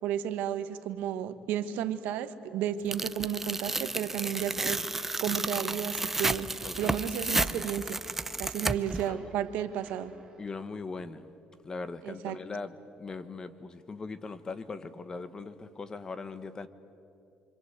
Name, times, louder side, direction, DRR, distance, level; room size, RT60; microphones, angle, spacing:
voice 1, 0.0-6.5 6.8-8.0 8.4-10.1 12.0-12.4, right 10 dB, 90° right, 10 dB, 1.4 m, -33 dB
Tearing, 2.9-9.0, right 2 dB, 10° right, 0.6 m, -32 dB
voice 2, 5.5-5.9 6.6-7.0 8.7-9.3 10.4-11.3 11.6-16.7, left 4 dB, 25° left, 12 dB, 1.2 m, -40 dB
sound 1, 6.3-10.7, right 3 dB, 25° right, 3.3 m, -51 dB
28.0 x 25.5 x 8.1 m, 2.7 s
cardioid pair, 145°, 3 cm